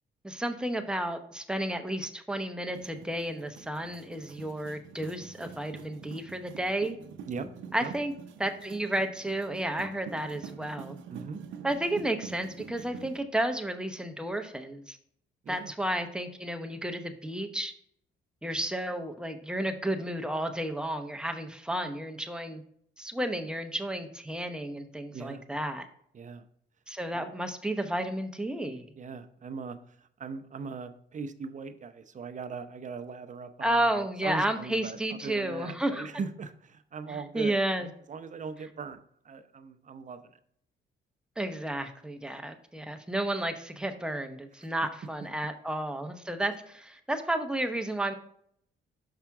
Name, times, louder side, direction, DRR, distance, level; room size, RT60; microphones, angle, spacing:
voice 1, 0.2-7.0 7.7-8.1 8.4-11.0 11.6-15.0 15.5-17.7 18.4-22.6 23.0-25.9 26.9-28.9 33.6-36.1 37.1-37.9 41.4-48.1, right 1 dB, 5° right, 6 dB, 0.8 m, -32 dB
sound 1, 2.7-13.2, right 7 dB, 75° right, 0.7 m, -46 dB
voice 2, 11.1-11.4 15.4-15.7 25.1-25.4 26.1-26.5 27.1-27.3 29.0-39.0 39.2-40.4 44.6-44.7, right 5 dB, 40° right, 10 dB, 0.7 m, -40 dB
5.8 x 5.7 x 3.6 m, 0.66 s
cardioid pair, 90°, 20 cm